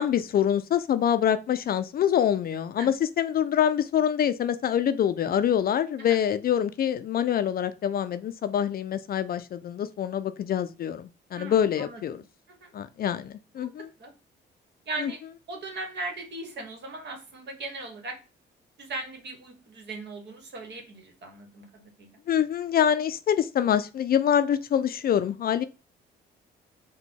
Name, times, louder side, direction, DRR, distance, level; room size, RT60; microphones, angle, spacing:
voice 1, 0.0-12.2 12.7-13.9 15.0-15.1 22.3-25.6, left 9 dB, 50° left, 0.4 m, -25 dB
voice 2, 11.3-12.0 12.6-12.7 13.6-13.7 14.0-14.1 14.9-15.2 15.5-18.2 18.8-22.1, right 2 dB, 60° right, 1.4 m, -38 dB
4.0 x 2.2 x 4.4 m
cardioid pair, 90°, 20 cm